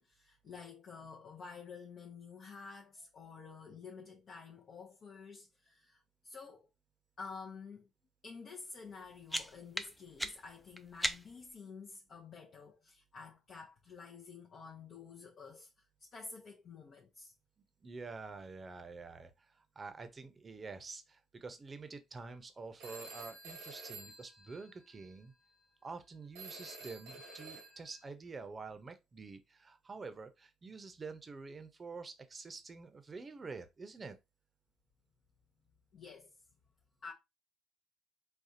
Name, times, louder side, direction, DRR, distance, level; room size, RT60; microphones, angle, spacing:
voice 1, 0.0-6.7 7.2-7.9 8.2-15.7 16.0-17.3 35.9-36.3 37.0-37.1, left 5 dB, 55° left, 0.6 m, -50 dB
sound 1, 8.9-11.6, equal, ahead, 0.5 m, -40 dB
voice 2, 17.8-25.3 25.8-34.2, right 4 dB, 35° right, 0.7 m, -48 dB
Telephone, 22.8-25.1 26.3-28.1, right 3 dB, 90° right, 1.1 m, -50 dB
4.1 x 2.3 x 2.7 m
hypercardioid pair, 60°, 0 cm